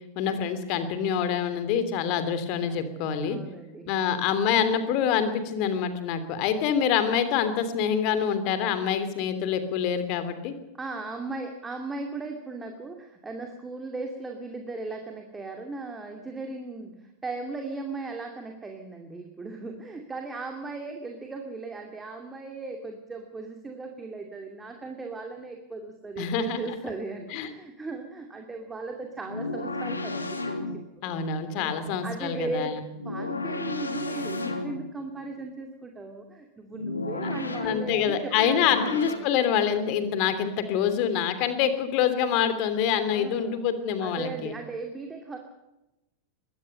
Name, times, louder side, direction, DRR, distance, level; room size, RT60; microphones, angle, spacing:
voice 1, 0.1-3.4 3.9-10.5 26.2-26.8 27.3-27.5 31.0-32.7 37.6-44.5, left 8 dB, 45° left, 11 dB, 3.1 m, -26 dB
voice 2, 2.7-3.9 10.7-39.0 43.0-43.7 44.0-45.4, right 3 dB, 15° right, 3 dB, 2.5 m, -37 dB
sound 1, 29.2-31.0 32.9-35.0 36.7-39.2, left 2 dB, 80° left, 2.9 m, -32 dB
22.5 x 18.0 x 6.8 m, 0.94 s
figure-of-eight pair, 90°, 0 cm